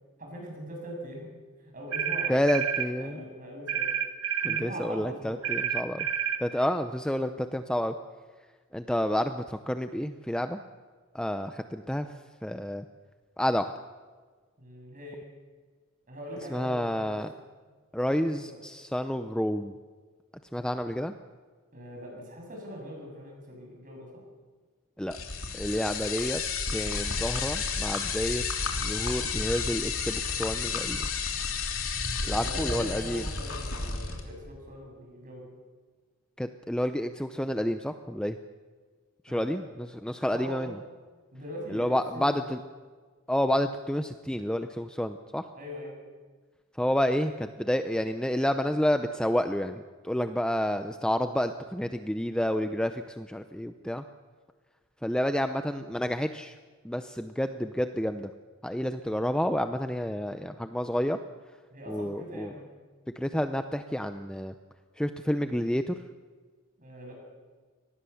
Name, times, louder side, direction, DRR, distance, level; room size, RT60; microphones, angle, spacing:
voice 1, 0.2-1.3 1.6-3.9 4.4-5.5 14.6-15.2 16.1-17.2 18.1-18.6 21.7-24.2 32.3-35.5 39.3-39.6 40.1-40.8 41.3-42.6 45.5-45.9 61.7-62.7 66.8-67.2, equal, 40° right, 1 dB, 7.7 m, -41 dB
sound 1, 1.9-2.9 3.7-4.7 5.4-6.4, right 9 dB, 75° right, 1.7 m, -29 dB
voice 2, 2.3-3.2 4.4-6.1 6.4-7.9 8.7-10.6 11.1-12.1 12.4-12.8 13.4-13.7 16.5-17.3 17.9-19.7 20.5-21.1 25.0-25.2 25.5-26.4 26.7-28.4 28.8-31.1 32.2-33.2 36.4-38.4 39.3-40.7 41.7-42.6 43.3-45.4 46.8-54.0 55.0-56.6 56.8-58.3 58.6-61.2 61.9-62.5 63.2-64.5 65.0-65.9, equal, 5° left, 8 dB, 0.6 m, -29 dB
sound 2, 25.1-34.2, left 5 dB, 65° left, 3.2 m, -31 dB
24.5 x 19.0 x 7.1 m, 1.5 s
head